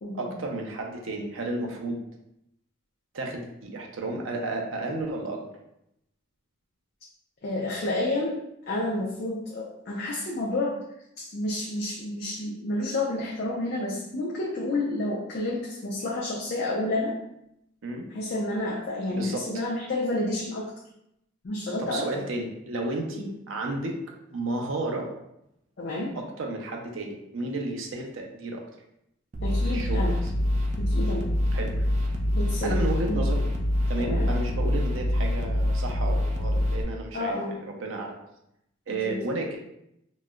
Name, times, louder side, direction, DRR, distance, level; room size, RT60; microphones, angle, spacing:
voice 1, 0.1-2.0 3.1-5.5 17.8-18.1 19.1-19.4 21.8-24.0 24.3-25.1 26.1-28.6 29.7-30.3 31.5-31.9 32.6-33.4 33.9-38.2 38.9-39.6, right 2 dB, 85° right, 1 dB, 0.6 m, -32 dB
voice 2, 7.4-10.8 11.2-17.1 18.1-20.7 21.4-22.1 23.2-23.3 25.8-26.1 29.4-30.2 30.8-31.3 32.3-33.2 34.0-34.3 37.1-37.5 38.9-39.2, left 2 dB, 55° left, -4 dB, 0.5 m, -30 dB
sound 1, 29.3-36.8, left 1 dB, 35° right, 0.4 m, -25 dB
4.0 x 2.1 x 2.3 m, 0.80 s
head